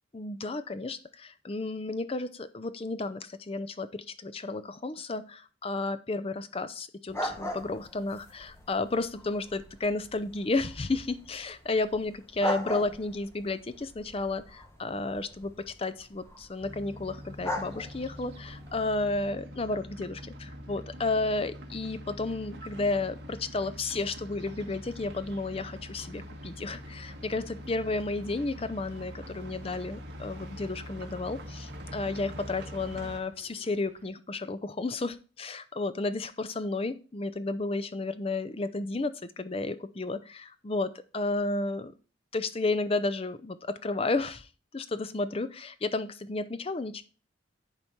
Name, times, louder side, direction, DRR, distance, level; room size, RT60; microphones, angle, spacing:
voice 1, 0.1-41.9 42.3-44.5 44.7-47.0, left 3 dB, 30° left, 13 dB, 0.5 m, -32 dB
sound 1, 7.1-19.3, left 1 dB, 15° left, 1.0 m, -40 dB
sound 2, 16.6-33.2, equal, 60° right, 1.5 m, -44 dB
sound 3, 24.4-34.1, right 2 dB, 40° right, 1.6 m, -59 dB
10.5 x 4.1 x 4.5 m, 0.36 s
head